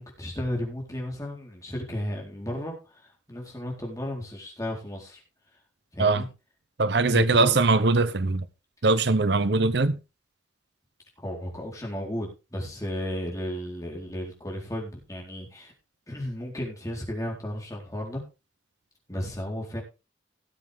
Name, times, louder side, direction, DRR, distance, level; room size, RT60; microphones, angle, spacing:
voice 1, 0.0-5.2 5.9-6.3 7.0-7.7 11.2-15.7 16.1-18.2 19.1-19.8, equal, 15° left, 4.1 m, -34 dB
voice 2, 6.8-8.5 8.8-10.0, right 3 dB, 60° right, 0.8 m, -21 dB
17.5 x 7.6 x 3.6 m
head